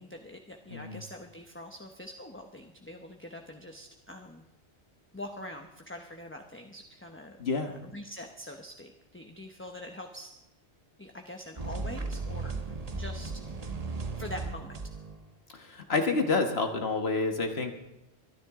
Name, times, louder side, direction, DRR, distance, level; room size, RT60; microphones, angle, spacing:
voice 1, 0.0-4.5 5.1-7.4 7.7-10.3 11.0-13.3 14.2-14.9, left 1 dB, 10° left, 3 dB, 0.9 m, -44 dB
voice 2, 0.7-1.0 7.4-7.7 15.5-17.8, left 3 dB, 65° left, 5 dB, 1.7 m, -29 dB
sound 1, 11.6-15.3, right 3 dB, 35° right, 1.2 m, -36 dB
24.0 x 10.5 x 3.7 m, 0.94 s
omnidirectional pair, 1.2 m